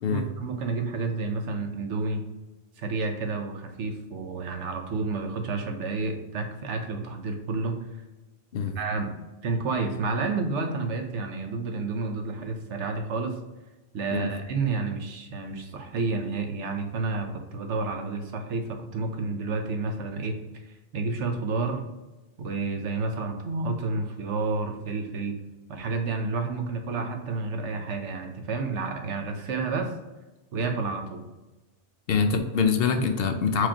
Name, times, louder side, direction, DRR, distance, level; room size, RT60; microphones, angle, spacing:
voice 1, 0.1-2.2 2.8-7.8 8.8-9.1 9.4-13.4 13.9-20.4 20.7-21.8 22.4-25.4 25.7-29.9 30.5-31.2, right 3 dB, 90° right, 5 dB, 1.0 m, -30 dB
voice 2, 32.1-33.7, left 5 dB, 65° left, 6 dB, 0.7 m, -24 dB
4.7 x 3.9 x 2.8 m, 1.1 s
omnidirectional pair, 1.2 m